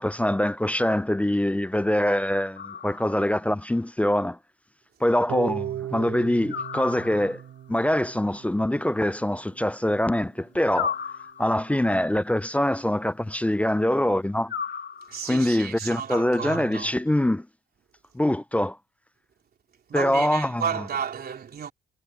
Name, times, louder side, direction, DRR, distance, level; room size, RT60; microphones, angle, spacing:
voice 1, 0.0-4.4 5.0-7.4 7.7-10.9 11.4-14.5 15.3-17.5 18.1-18.8 19.9-20.6, left 1 dB, 5° left, 0.4 m, -24 dB
sound 1, 2.6-3.4 6.5-7.5 10.7-11.8 14.5-15.5, left 7 dB, 60° left, 2.1 m, -34 dB
Harp, 5.3-11.4, right 12 dB, 75° right, 6.2 m, -38 dB
voice 2, 15.1-17.0 19.9-21.7, right 7 dB, 50° right, 3.5 m, -32 dB
cardioid pair, 90°, 20 cm